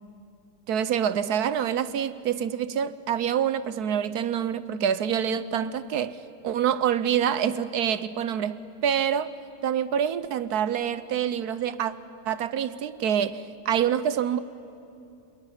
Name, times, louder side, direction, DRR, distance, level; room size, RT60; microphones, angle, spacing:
voice 1, 0.7-6.2 6.4-9.3 9.6-11.9 12.2-14.4, right 9 dB, 65° right, 1.3 m, -26 dB
27.5 x 21.5 x 10.0 m
omnidirectional pair, 1.9 m